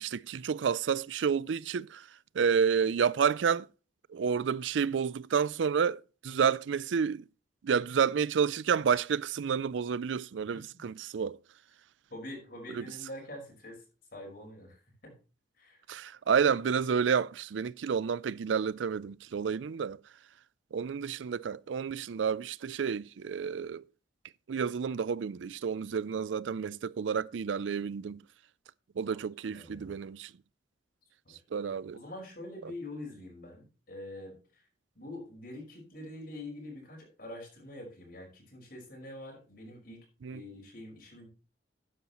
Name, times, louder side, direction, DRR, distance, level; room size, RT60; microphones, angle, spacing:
voice 1, 0.0-2.1 2.3-3.7 4.1-7.2 7.6-11.4 12.7-12.8 15.9-20.0 20.7-23.8 24.5-28.2 29.0-30.3 31.5-32.0 40.2-40.4, right 6 dB, 90° right, 0.4 m, -30 dB
voice 2, 12.1-13.8 14.1-15.1 15.6-15.8 29.0-29.2 29.5-30.0 31.3-31.4 31.9-34.6 35.0-41.3, left 1 dB, 55° left, 5.3 m, -45 dB
12.5 x 9.5 x 3.0 m
head